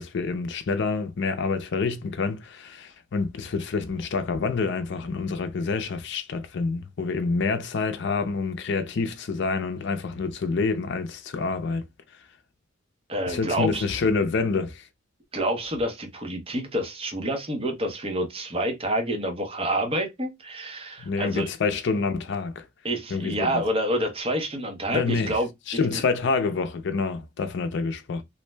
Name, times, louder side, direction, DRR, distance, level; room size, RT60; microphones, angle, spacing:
voice 1, 0.0-11.8 13.3-14.9 21.0-22.7 23.1-23.6 24.9-25.4 25.7-28.2, left 4 dB, 60° left, 0.5 m, -27 dB
voice 2, 13.1-13.8 15.3-21.5 22.8-25.5 25.9-26.0, right 1 dB, 30° right, 0.7 m, -28 dB
2.5 x 2.1 x 3.2 m
head